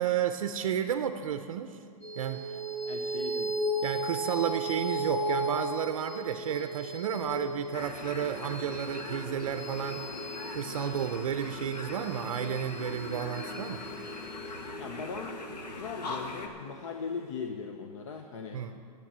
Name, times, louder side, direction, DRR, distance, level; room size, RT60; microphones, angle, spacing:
voice 1, 0.0-1.8 2.2-2.4 3.8-13.8 18.5-18.8, right 9 dB, 55° right, 8 dB, 0.6 m, -32 dB
sound 1, 2.0-16.8, right 1 dB, 10° left, 0.8 m, -36 dB
voice 2, 2.9-3.6 14.8-15.4 15.7-18.6, left 5 dB, 50° left, 4 dB, 0.8 m, -39 dB
sound 2, 7.7-16.5, left 2 dB, 85° left, 1.8 m, -41 dB
13.0 x 8.9 x 7.4 m, 2.4 s
hypercardioid pair, 180°, 20 cm